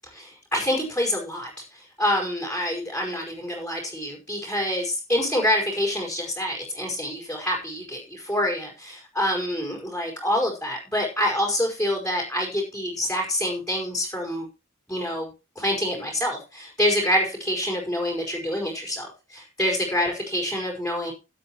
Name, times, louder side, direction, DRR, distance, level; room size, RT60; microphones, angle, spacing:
voice 1, 0.1-14.5 14.9-15.3 15.5-21.1, left 1 dB, 5° left, 0 dB, 4.9 m, -26 dB
17.0 x 8.6 x 3.1 m, 0.29 s
head